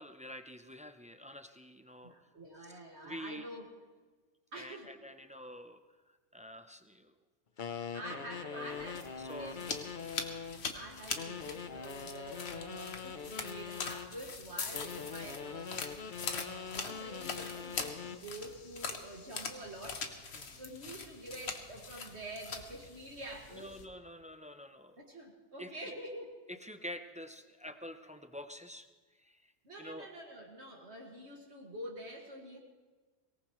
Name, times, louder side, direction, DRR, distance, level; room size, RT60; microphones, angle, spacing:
voice 1, 0.0-2.1 2.6-3.4 4.5-5.8 6.3-7.1 8.1-8.2 8.5-8.9 9.2-9.6 20.3-20.6 23.5-25.0 25.6-25.9 26.5-28.9 29.2-29.5 29.8-30.1, equal, 10° right, 8 dB, 0.6 m, -47 dB
voice 2, 2.0-3.7 4.5-4.9 7.9-9.7 10.7-23.7 25.0-26.3 29.6-32.6, right 1 dB, 75° right, -1 dB, 2.4 m, -47 dB
sound 1, 7.6-10.7 11.2-14.1 14.7-18.3, left 6 dB, 50° left, 0.9 m, -43 dB
sound 2, 8.6-23.8, left 4 dB, 70° left, 1.5 m, -43 dB
23.5 x 18.0 x 3.2 m, 1.3 s
omnidirectional pair, 1.1 m